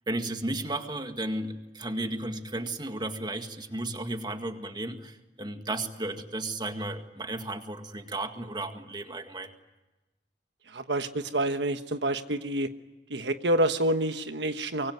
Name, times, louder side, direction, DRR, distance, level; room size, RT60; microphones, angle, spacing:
voice 1, 0.1-9.5, right 2 dB, 25° right, 6 dB, 1.9 m, -34 dB
voice 2, 10.7-12.7 13.1-14.9, right 1 dB, 80° right, 8 dB, 1.3 m, -28 dB
24.5 x 24.0 x 9.5 m, 1.1 s
head